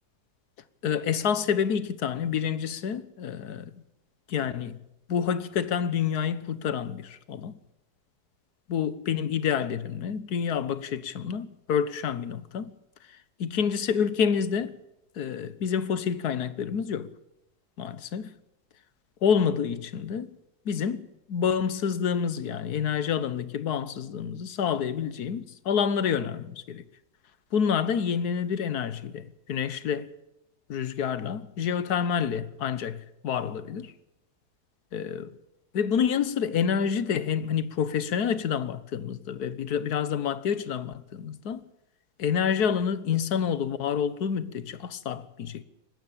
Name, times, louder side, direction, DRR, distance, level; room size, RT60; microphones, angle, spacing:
voice 1, 0.8-3.7 4.3-4.8 5.1-7.5 8.7-12.7 13.4-14.8 15.2-17.1 17.8-18.3 19.2-20.3 20.6-26.8 27.5-30.1 30.7-33.9 34.9-35.3 35.7-41.6 42.2-45.6, left 7 dB, 75° left, 1.6 m, -28 dB
20.0 x 15.5 x 8.7 m
omnidirectional pair, 1.7 m